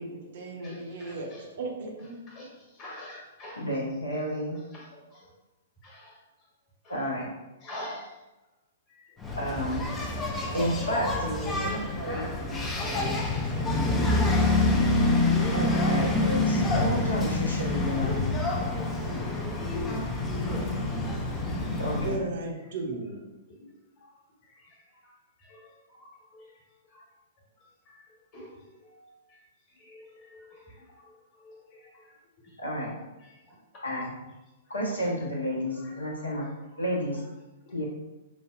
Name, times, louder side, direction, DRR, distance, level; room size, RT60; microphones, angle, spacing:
voice 1, 0.0-2.3 10.4-11.7 11.9-13.2 13.5-13.7 19.9-20.0 21.8-23.2, right 2 dB, 55° right, 0 dB, 0.7 m, -37 dB
voice 2, 2.8-3.6 5.8-6.0 7.6-8.1 15.2-15.3 17.7-17.9 25.5-25.6 28.3-28.4 29.9-30.0, left 1 dB, 30° left, -4 dB, 1.3 m, -41 dB
voice 3, 3.6-4.6 6.9-7.3 9.4-9.8 10.5-12.3 15.4-18.2 21.8-22.2 32.6-32.9 33.8-34.1 34.7-36.5 36.8-37.2 37.7-37.9, equal, 75° left, -3 dB, 0.9 m, -31 dB
Engine, 9.2-22.2, left 2 dB, 15° left, 0.4 m, -27 dB
5.0 x 2.2 x 2.4 m, 1.0 s
figure-of-eight pair, 110°, 0 cm